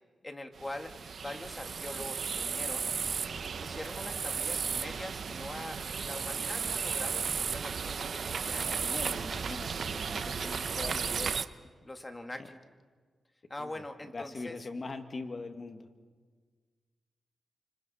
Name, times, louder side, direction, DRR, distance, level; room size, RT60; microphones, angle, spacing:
voice 1, 0.2-0.9 1.2-2.9 3.6-9.0 11.8-12.6 13.5-14.6, left 1 dB, 20° left, 6 dB, 2.0 m, -43 dB
sound 1, 0.6-11.5, right 6 dB, 60° right, 0.7 m, -34 dB
voice 2, 8.6-11.4 12.4-12.5 13.6-13.9 14.1-15.9, left 3 dB, 40° left, 7 dB, 1.8 m, -42 dB
29.5 x 25.5 x 4.3 m, 1.5 s
cardioid pair, 85°, 0 cm